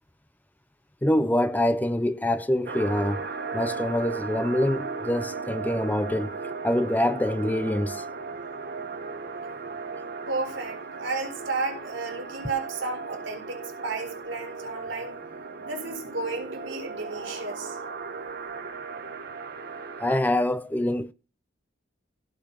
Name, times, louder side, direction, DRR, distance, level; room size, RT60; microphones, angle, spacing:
voice 1, 1.0-3.3 3.5-6.3 6.6-8.0 20.0-21.1, left 1 dB, 10° left, 0.5 m, -25 dB
sound 1, 2.7-20.2, right 4 dB, 55° right, 1.4 m, -36 dB
voice 2, 10.3-15.2 15.6-17.8, right 3 dB, 70° right, 4.2 m, -33 dB
16.5 x 5.5 x 5.5 m
head